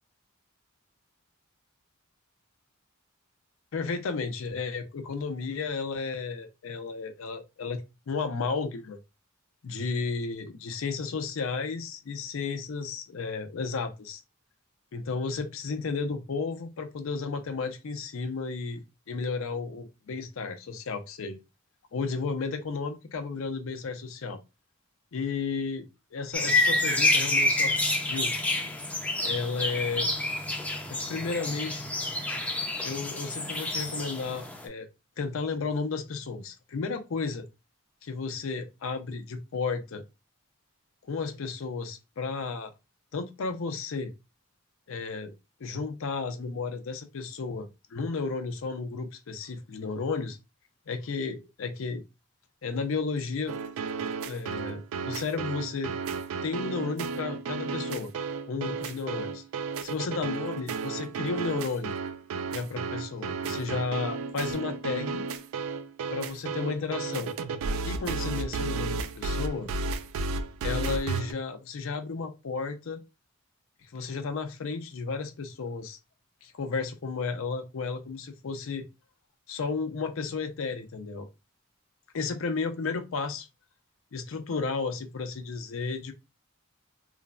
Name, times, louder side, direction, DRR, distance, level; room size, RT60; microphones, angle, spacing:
voice 1, 3.7-7.8 8.1-9.0 9.6-14.2 14.9-21.4 21.9-24.4 25.1-28.3 29.2-30.1 30.9-31.8 32.8-34.9 35.2-37.4 38.0-40.0 41.0-42.7 43.1-44.1 44.9-45.3 45.6-50.4 50.9-52.0 52.6-53.6 54.2-55.9 56.4-58.1 58.5-59.4 59.8-61.9 62.5-65.2 66.1-67.3 67.8-69.7 70.6-73.0 73.8-76.0 76.4-78.9 79.5-81.3 82.1-83.5 84.1-86.1, left 4 dB, 65° left, 0.5 m, -33 dB
sound 1, 26.3-34.7, left 2 dB, 5° left, 0.4 m, -28 dB
sound 2, 53.5-71.3, right 4 dB, 75° right, 0.3 m, -33 dB
3.1 x 2.0 x 2.4 m
head